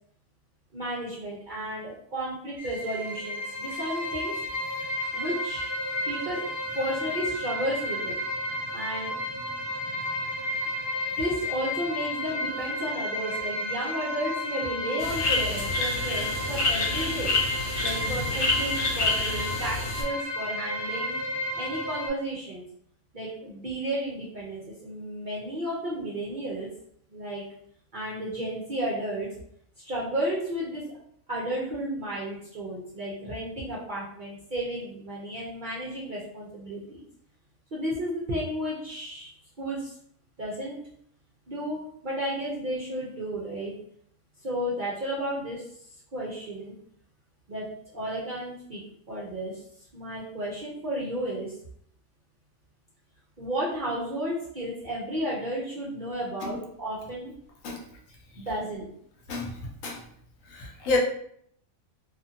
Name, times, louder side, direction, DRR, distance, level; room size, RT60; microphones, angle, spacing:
voice 1, 0.7-4.3 5.1-5.7 6.1-6.5 6.7-8.2 8.7-9.1 11.2-17.3 17.8-21.2 21.5-22.6 23.1-26.7 27.1-27.4 27.9-29.3 29.8-30.8 31.3-37.0 37.7-39.3 39.6-39.9 40.4-40.8 41.5-43.7 44.4-45.6 46.1-46.7 47.5-47.7 47.9-48.8 49.1-49.6 49.9-51.5 53.4-57.3 58.4-58.9, right 1 dB, 55° right, -6 dB, 0.5 m, -33 dB
sound 1, 2.6-22.1, left 1 dB, 20° right, 1.1 m, -32 dB
sound 2, 15.0-20.0, left 3 dB, 55° left, 0.6 m, -28 dB
voice 2, 59.3-60.0 60.5-61.0, left 3 dB, 75° left, 0 dB, 0.9 m, -30 dB
2.6 x 2.4 x 2.6 m, 0.67 s
omnidirectional pair, 1.5 m